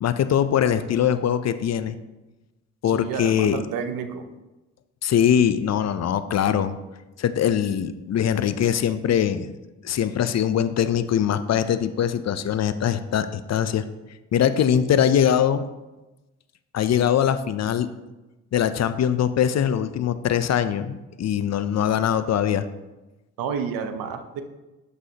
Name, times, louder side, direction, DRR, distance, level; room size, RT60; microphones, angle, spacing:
voice 1, 0.0-2.0 2.8-3.6 5.0-6.8 7.2-9.5 9.8-13.8 14.3-15.6 16.7-17.9 18.5-22.7, left 9 dB, 50° left, 12 dB, 0.5 m, -22 dB
voice 2, 2.8-4.3 23.4-24.4, right 6 dB, 75° right, 8 dB, 0.7 m, -30 dB
7.1 x 6.4 x 2.8 m, 1.1 s
supercardioid pair, 55°, 35 cm